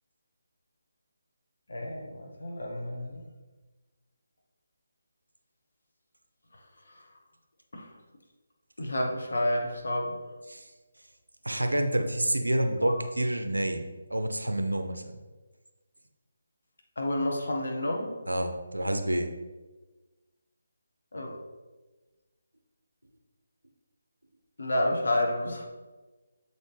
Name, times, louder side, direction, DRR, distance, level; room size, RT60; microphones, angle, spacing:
voice 1, 1.7-3.2 6.5-7.1 7.7-7.9 8.8-10.2 12.7-13.0 17.0-18.2 21.1-21.4 24.6-25.6, left 1 dB, 60° left, 1 dB, 1.1 m, -30 dB
voice 2, 11.4-15.2 18.3-19.3, right 1 dB, 80° right, 6 dB, 0.7 m, -28 dB
7.0 x 4.1 x 3.4 m, 1.2 s
figure-of-eight pair, 150°, 0 cm